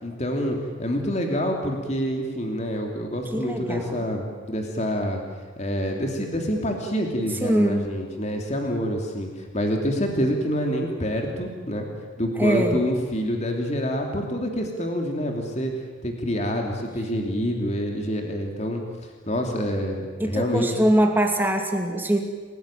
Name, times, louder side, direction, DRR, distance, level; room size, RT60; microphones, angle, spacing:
voice 1, 0.0-5.2 5.6-11.9 12.2-15.7 16.0-18.8 19.3-20.7, equal, 35° left, 2 dB, 3.0 m, -27 dB
voice 2, 3.3-4.0 7.4-7.9 12.4-12.8 20.2-22.2, right 1 dB, 10° right, 3 dB, 2.4 m, -22 dB
29.5 x 18.5 x 9.1 m, 1.5 s
head